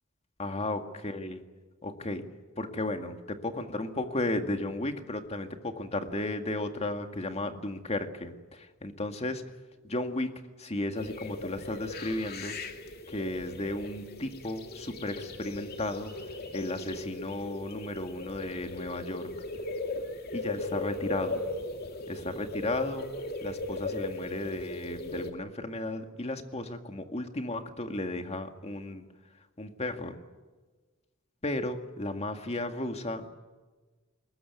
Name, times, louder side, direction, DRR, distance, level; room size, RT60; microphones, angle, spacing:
voice 1, 0.4-1.4 1.8-2.2 2.6-8.3 8.8-9.4 9.8-10.3 10.6-12.6 13.1-16.1 16.5-19.3 20.3-21.4 22.1-23.1 23.4-29.0 29.6-30.2 31.4-33.3, left 2 dB, 30° left, 6 dB, 2.1 m, -34 dB
sound 1, 11.0-25.3, left 2 dB, 50° left, 2.5 m, -38 dB
21.5 x 20.5 x 9.5 m, 1.3 s
head